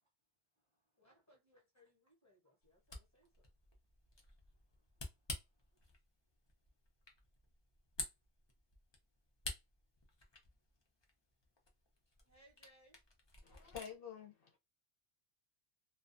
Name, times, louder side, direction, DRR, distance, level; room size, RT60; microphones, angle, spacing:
voice 1, 1.0-3.5 12.2-13.0, equal, 15° left, 0.9 m, -68 dB
Camera, 2.6-14.0, left 2 dB, 35° left, 0.5 m, -52 dB
voice 2, 4.1-6.0, right 1 dB, 45° right, 0.8 m, -90 dB
voice 3, 13.4-14.6, left 8 dB, 60° left, 0.8 m, -49 dB
2.3 x 2.2 x 2.5 m
omnidirectional pair, 1.2 m